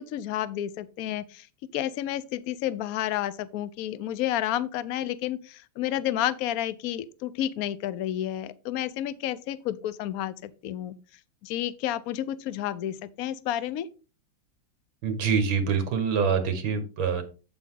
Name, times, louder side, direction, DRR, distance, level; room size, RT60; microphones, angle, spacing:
voice 1, 0.0-1.5 1.7-10.9 11.4-13.9, left 12 dB, 90° left, 0.7 m, -30 dB
voice 2, 15.0-17.2, right 6 dB, 70° right, 2.3 m, -25 dB
8.2 x 8.0 x 3.8 m
omnidirectional pair, 2.3 m